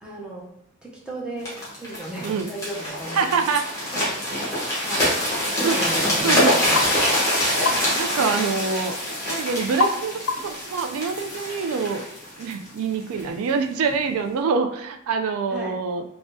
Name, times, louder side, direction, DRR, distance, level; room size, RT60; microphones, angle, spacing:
voice 1, 0.0-3.4 4.1-4.2 4.8-6.9 15.5-15.8, right 1 dB, 5° right, -5 dB, 0.5 m, -36 dB
sound 1, 1.4-13.3 13.9-14.1, left 1 dB, 15° left, 1.0 m, -25 dB
voice 2, 3.1-3.9 5.6-5.8 6.2-6.5 8.0-9.0 9.3-12.0 12.4-16.0, right 5 dB, 90° right, 7 dB, 0.3 m, -25 dB
sound 2, 6.8-6.9 7.6-7.9 9.8-10.0 10.3-10.6, left 4 dB, 55° left, 0.3 m, -24 dB
3.5 x 2.1 x 2.6 m, 0.75 s
head